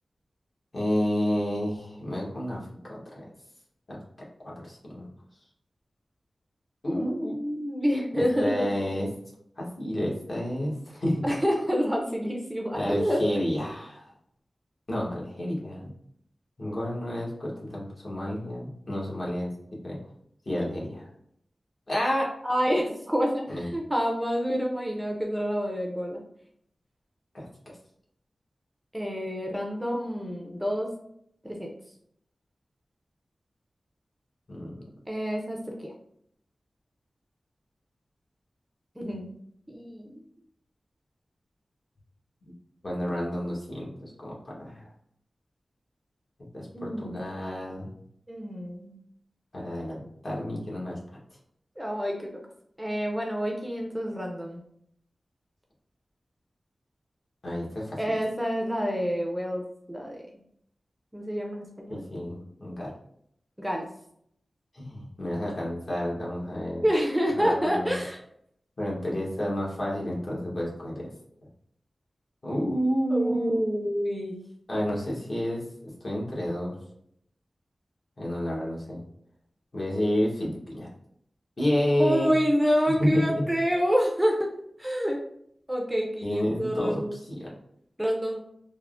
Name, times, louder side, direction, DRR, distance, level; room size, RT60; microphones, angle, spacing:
voice 1, 0.7-2.6 2.8-3.3 3.9-4.0 4.4-5.1 6.8-7.3 8.1-9.1 9.6-11.2 12.7-14.1 14.9-15.9 16.6-19.5 19.8-20.0 20.5-21.1 21.9-22.3 23.5-23.7 27.3-27.5 34.5-34.7 39.1-39.2 42.8-44.9 46.5-47.9 49.5-51.0 57.4-58.0 61.9-62.9 64.7-66.8 67.4-68.0 68.8-71.1 72.4-73.6 74.7-75.6 76.0-76.8 78.2-79.0 79.7-80.9 81.6-82.3 83.0-83.3 86.2-87.5, equal, 50° left, -4 dB, 1.0 m, -30 dB
voice 2, 7.0-8.7 11.2-13.2 22.4-26.2 28.9-30.9 31.4-31.7 35.1-35.9 39.0-39.3 39.7-40.1 46.7-47.1 48.3-48.9 51.8-52.4 52.8-54.6 58.0-60.2 61.1-62.1 63.6-63.9 66.8-68.2 73.1-74.4 82.0-84.5 84.8-85.2 85.7-87.2 88.0-88.4, equal, 10° right, 0 dB, 0.5 m, -28 dB
3.4 x 2.0 x 2.4 m, 0.69 s
wide cardioid pair, 70°, 0 cm